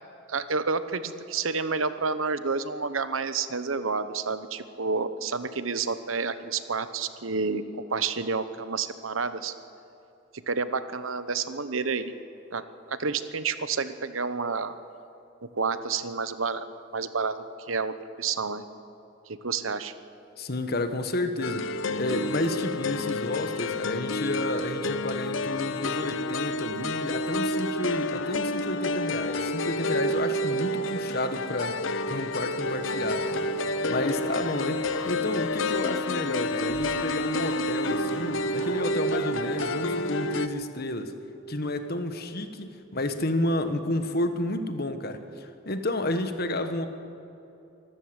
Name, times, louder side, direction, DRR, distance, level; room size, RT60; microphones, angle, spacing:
voice 1, 0.3-7.6 7.9-9.5 10.5-12.1 12.5-12.6 12.9-14.7 15.5-16.6 16.9-17.4 17.7-18.6 19.3-19.9, right 4 dB, 90° right, 12 dB, 1.1 m, -29 dB
voice 2, 20.4-33.4 33.9-41.1 41.5-46.9, left 1 dB, 50° left, 8 dB, 1.5 m, -31 dB
sound 1, 21.4-40.5, left 1 dB, 70° left, 0.8 m, -29 dB
sound 2, 32.5-39.7, right 1 dB, 30° right, 6.3 m, -45 dB
24.5 x 14.0 x 8.1 m, 2.7 s
head